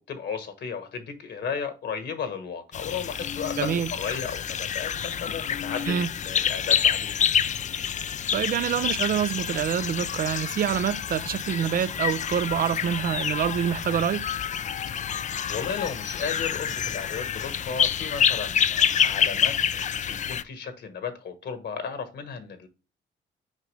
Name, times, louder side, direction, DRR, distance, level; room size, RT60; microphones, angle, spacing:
voice 1, 0.0-7.2 15.5-22.7, left 6 dB, 60° left, 1.3 m, -34 dB
sound 1, 2.7-20.4, left 8 dB, 40° left, 0.4 m, -27 dB
voice 2, 3.6-3.9 5.9-6.1 8.3-14.3, right 9 dB, 50° right, 0.4 m, -26 dB
6.5 x 4.8 x 3.2 m
cardioid pair, 90°, 20 cm